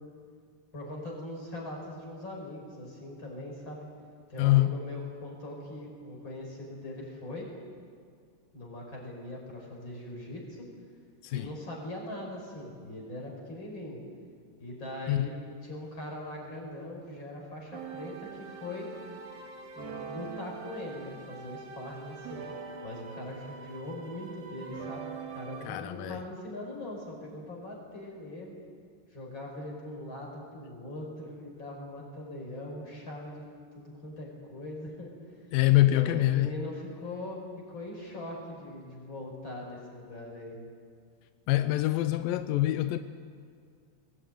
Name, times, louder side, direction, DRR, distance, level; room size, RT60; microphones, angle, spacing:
voice 1, 0.7-3.9 4.3-7.5 8.5-10.6 11.3-14.0 14.6-15.3 15.6-18.9 19.7-22.5 22.8-28.6 29.1-33.5 33.7-35.4 35.9-37.4 37.7-40.6, left 1 dB, 30° left, 5.5 m, -41 dB
voice 2, 4.4-4.8 11.2-11.5 15.1-15.3 25.6-26.2 35.5-36.5 41.5-43.0, left 16 dB, 80° left, 2.0 m, -25 dB
sound 1, 17.7-25.7, right 5 dB, 55° right, 3.0 m, -43 dB
21.5 x 17.5 x 9.4 m
omnidirectional pair, 4.8 m